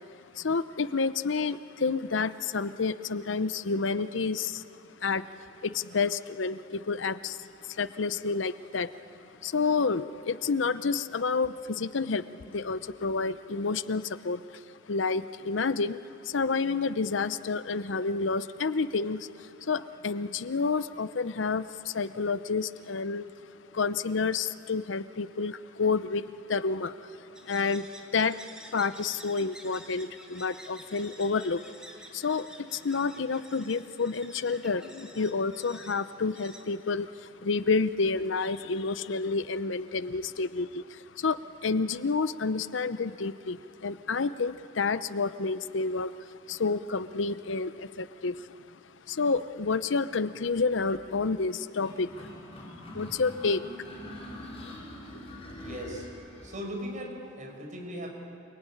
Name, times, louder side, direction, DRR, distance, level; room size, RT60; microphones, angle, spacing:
voice 1, 0.3-4.7 5.0-5.3 5.6-8.9 9.4-14.6 14.9-23.3 23.7-28.4 28.7-31.7 32.1-48.6 49.1-52.3 52.9-53.9 54.6-54.7 55.1-55.2, left 4 dB, 75° left, 14 dB, 0.7 m, -29 dB
sound 1, 27.3-37.5, right 1 dB, 5° right, 2.0 m, -51 dB
sound 2, 51.8-56.6, left 1 dB, 30° left, 6.0 m, -44 dB
voice 2, 55.6-56.1 56.4-58.1, equal, 40° right, 1 dB, 5.5 m, -38 dB
28.0 x 20.0 x 9.9 m, 2.6 s
head